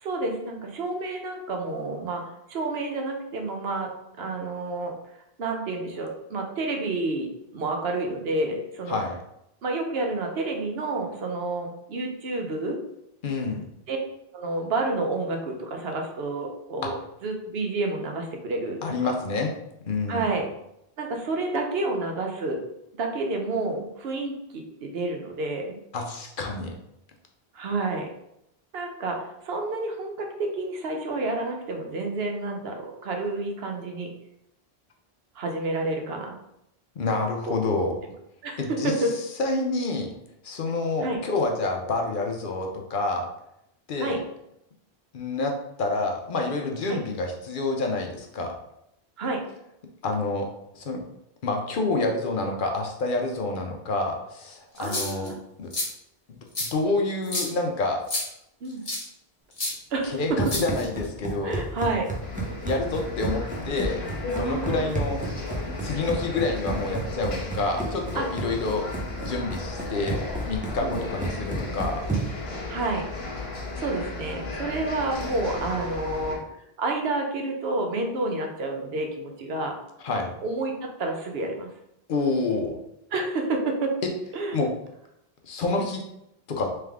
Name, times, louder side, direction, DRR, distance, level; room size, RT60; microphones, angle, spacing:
voice 1, 0.0-3.9 4.2-4.9 5.4-9.0 9.6-12.8 13.9-14.0 14.3-16.9 17.2-19.1 20.1-20.4 21.0-22.6 22.9-25.8 27.5-28.1 28.7-34.1 35.4-36.4 37.5-37.6 37.8-37.9 38.4-39.1 41.0-41.2 44.0-44.2 46.9-47.0 49.2-49.4 54.8-55.4 58.6-58.8 59.9-60.4 61.4-62.1 64.3-64.9 68.1-68.3 70.8-71.0 72.7-73.1 73.8-76.4 76.8-79.8 80.4-81.7 83.1-83.9 84.3-84.6, right 2 dB, 75° right, 3 dB, 0.9 m, -29 dB
voice 2, 13.2-13.7 16.8-16.9 18.8-19.5 19.9-20.3 25.9-26.7 37.0-38.0 38.6-39.1 39.4-40.1 40.4-43.3 43.9-44.2 45.1-48.6 50.0-50.5 50.7-51.0 51.4-55.7 56.6-58.0 60.0-61.6 62.6-65.2 65.8-68.8 69.2-70.2 70.5-72.0 80.0-80.3 82.1-82.8 84.0-84.1 84.5-84.7 85.4-86.1 86.5-86.7, left 3 dB, 60° left, 2 dB, 0.7 m, -28 dB
sound 1, 54.8-55.3 55.7-55.9 56.5-56.7 57.2-57.5 58.1-58.2 58.9-59.0 59.6-59.7 60.4-61.0, left 1 dB, 35° left, 1.2 m, -29 dB
Run, 60.0-72.5, right 3 dB, 10° right, 0.5 m, -33 dB
sound 2, 62.2-76.4, left 3 dB, 85° left, 1.2 m, -35 dB
3.3 x 3.3 x 3.5 m, 0.81 s
omnidirectional pair, 1.0 m